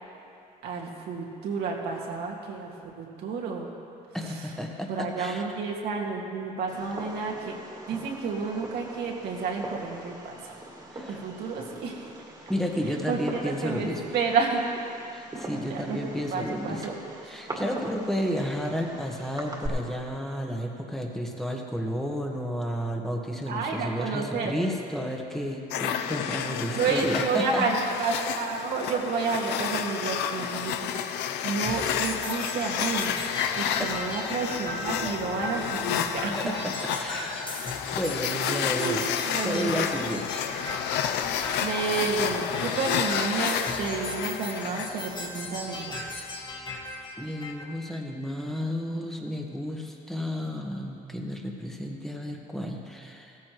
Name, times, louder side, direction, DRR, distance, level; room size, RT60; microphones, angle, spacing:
voice 1, 0.6-2.7 3.0-3.7 4.3-4.4 4.9-7.6 7.9-10.6 11.1-12.1 13.1-13.9 14.1-14.7 14.9-15.1 15.7-16.0 16.3-17.0 23.5-24.5 26.8-33.1 33.6-36.4 38.5-39.8 41.6-45.9, right 4 dB, 70° right, -1 dB, 2.0 m, -30 dB
voice 2, 4.1-5.4 10.9-11.2 12.5-14.0 15.1-16.9 17.2-27.7 33.5-33.9 36.3-37.5 37.9-39.1 39.4-40.5 47.2-53.4, equal, ahead, 0 dB, 1.4 m, -32 dB
Fireworks, 6.7-19.7, right 2 dB, 25° right, 2.1 m, -42 dB
sound 1, 25.7-45.1, left 9 dB, 80° left, 0.6 m, -31 dB
sound 2, 31.6-47.6, left 2 dB, 25° left, 1.7 m, -37 dB
16.5 x 14.0 x 3.1 m, 2.6 s
cardioid pair, 110°, 17 cm